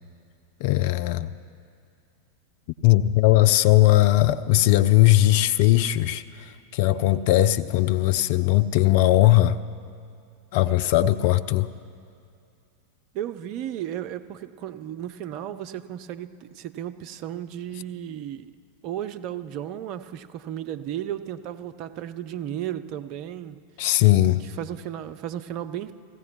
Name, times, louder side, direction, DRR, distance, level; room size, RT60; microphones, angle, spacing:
voice 1, 0.6-1.3 2.8-6.2 6.7-9.6 10.5-11.7 23.8-24.4, left 15 dB, 50° left, 11 dB, 0.3 m, -19 dB
voice 2, 13.1-18.5 18.8-23.6 24.4-25.9, right 11 dB, 40° right, 10 dB, 0.4 m, -34 dB
16.0 x 15.5 x 3.1 m, 2.5 s
figure-of-eight pair, 90°, 0 cm